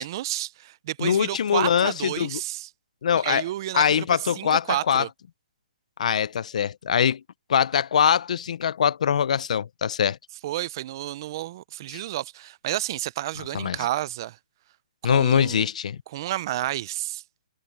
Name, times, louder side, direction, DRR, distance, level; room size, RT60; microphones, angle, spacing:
voice 1, 0.0-2.7 3.2-5.1 10.4-14.4 15.0-15.7 16.1-17.2, right 14 dB, 30° right, 0.5 m, -31 dB
voice 2, 1.0-2.4 3.0-3.4 3.7-5.0 6.0-7.2 7.5-10.2 13.5-13.8 15.0-16.0, left 8 dB, 55° left, 0.4 m, -23 dB
hypercardioid pair, 170°, 4 cm